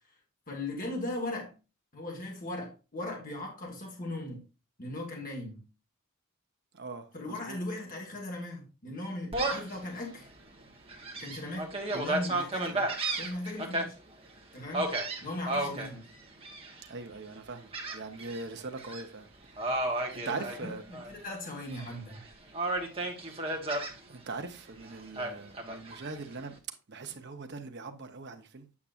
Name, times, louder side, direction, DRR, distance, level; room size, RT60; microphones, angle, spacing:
voice 1, 0.5-1.5 1.9-4.4 4.8-5.6 7.1-10.3 11.2-12.9 13.2-14.0 14.5-14.9 15.2-16.0 20.3-20.5 20.9-22.2, left 1 dB, 40° left, 1.8 m, -38 dB
voice 2, 6.7-7.6 16.9-19.2 20.1-20.8 24.1-26.5 26.9-28.7, right 3 dB, 50° right, 0.9 m, -41 dB
Gull seagull, 9.3-9.8 10.3-10.4 10.9-13.8 14.7-15.9 16.4-16.9 17.7-18.4 18.8-19.0 19.6-21.1 21.5-22.2 22.5-23.9 25.2-26.2, right 2 dB, 25° right, 1.2 m, -33 dB
8.5 x 5.9 x 2.5 m
head